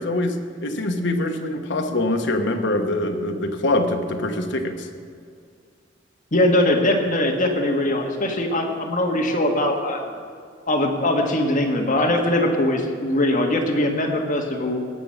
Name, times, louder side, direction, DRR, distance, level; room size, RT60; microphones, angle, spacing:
voice 1, 0.0-4.9, left 1 dB, 65° left, 4 dB, 1.1 m, -24 dB
voice 2, 6.3-10.0 10.7-14.8, left 1 dB, 45° left, 1 dB, 1.6 m, -21 dB
17.5 x 6.1 x 6.6 m, 2.3 s
head